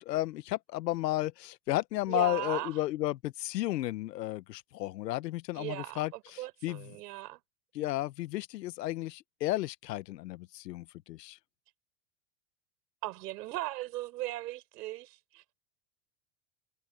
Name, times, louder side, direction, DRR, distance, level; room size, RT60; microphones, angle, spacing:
voice 1, 0.0-6.9 7.7-11.4, left 16 dB, 90° left, 1.3 m, -33 dB
voice 2, 2.1-2.8 5.5-7.4 13.0-15.4, right 17 dB, 80° right, 6.8 m, -38 dB
supercardioid pair, 135°, 48 cm